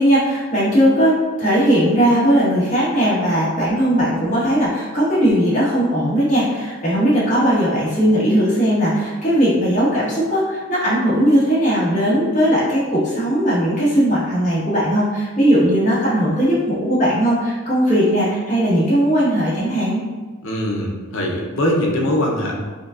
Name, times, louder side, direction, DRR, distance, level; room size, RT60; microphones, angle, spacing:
voice 1, 0.0-20.0, equal, 35° left, -9 dB, 1.3 m, -18 dB
voice 2, 20.4-22.5, left 1 dB, 60° left, 0 dB, 0.7 m, -21 dB
5.1 x 2.3 x 2.5 m, 1.4 s
head